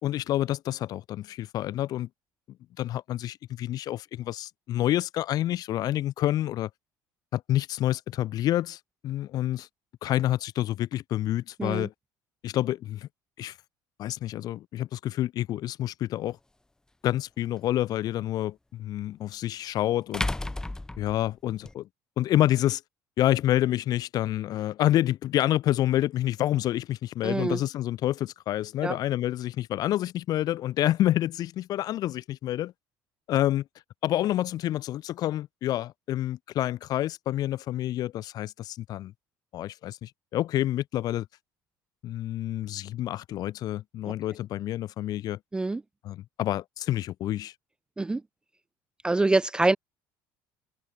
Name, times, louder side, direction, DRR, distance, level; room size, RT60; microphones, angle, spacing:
voice 1, 0.0-2.1 2.8-6.7 7.3-9.7 10.0-11.9 12.4-13.1 13.4-13.5 14.0-16.4 17.0-20.3 21.0-21.9 22.2-22.8 23.2-32.7 33.3-33.6 34.0-39.1 39.5-41.3 42.0-45.4 46.0-47.5, left 13 dB, 55° left, 1.2 m, -28 dB
sound 1, 16.3-16.4 19.0-19.1 20.1-21.7, left 2 dB, 10° left, 1.6 m, -32 dB
voice 2, 27.2-27.6 28.8-29.0 45.5-45.8 48.0-48.2 49.0-49.8, right 2 dB, 10° right, 0.3 m, -25 dB
cardioid pair, 120°, 8 cm